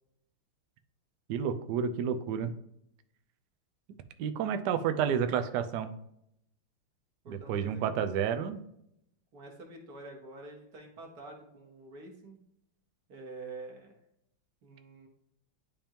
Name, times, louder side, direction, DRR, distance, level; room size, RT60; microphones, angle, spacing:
voice 1, 1.3-2.5 4.2-5.9 7.3-8.6, right 8 dB, 70° right, 9 dB, 1.1 m, -30 dB
voice 2, 7.2-7.9 9.3-12.4 13.1-14.0 14.6-15.1, right 2 dB, 50° right, 0 dB, 1.6 m, -47 dB
10.5 x 3.5 x 2.9 m, 0.76 s
omnidirectional pair, 2.2 m